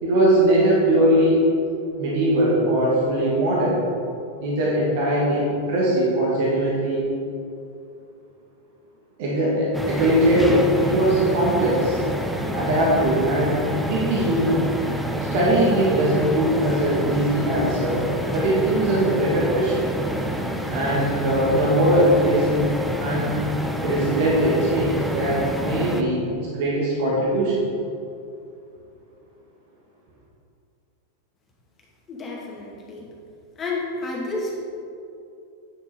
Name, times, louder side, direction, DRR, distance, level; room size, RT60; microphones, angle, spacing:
voice 1, 0.0-1.5 2.0-3.8 4.4-7.1 9.2-12.0 12.5-14.6 15.3-19.9 20.7-22.7 23.0-23.4 23.8-27.6, right 1 dB, 50° right, -5 dB, 2.1 m, -21 dB
sound 1, 9.7-26.0, equal, ahead, 0.7 m, -28 dB
voice 2, 32.1-33.1 33.6-34.6, left 2 dB, 25° left, -3 dB, 2.2 m, -30 dB
9.6 x 6.6 x 4.9 m, 2.6 s
figure-of-eight pair, 90°, 0 cm